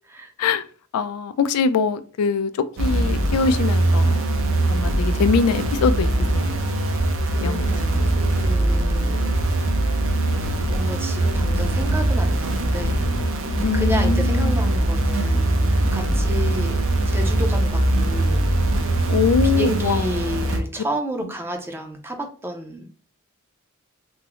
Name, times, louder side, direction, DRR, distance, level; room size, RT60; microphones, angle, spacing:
voice 1, 0.9-2.5 2.8-4.3 4.7-6.5 7.4-8.1 13.6-14.5 19.1-20.1, left 5 dB, 85° left, 0.3 m, -23 dB
sound 1, 2.8-20.6, right 1 dB, 65° right, 0.6 m, -21 dB
voice 2, 7.3-9.4 10.7-13.1 13.7-15.4 15.9-16.8 17.1-18.4 19.5-22.9, right 1 dB, 10° right, 0.4 m, -31 dB
3.5 x 2.0 x 2.9 m
head